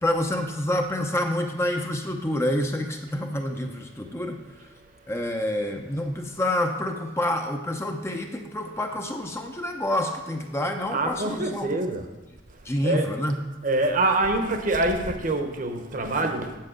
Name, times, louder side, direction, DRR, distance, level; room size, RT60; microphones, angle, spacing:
voice 1, 0.0-4.4 5.1-11.7 12.6-13.4, left 1 dB, 15° left, 4 dB, 0.6 m, -27 dB
voice 2, 10.9-12.1 12.8-13.1 13.6-16.6, right 2 dB, 45° right, 5 dB, 1.0 m, -25 dB
8.1 x 7.6 x 6.6 m, 1.1 s
head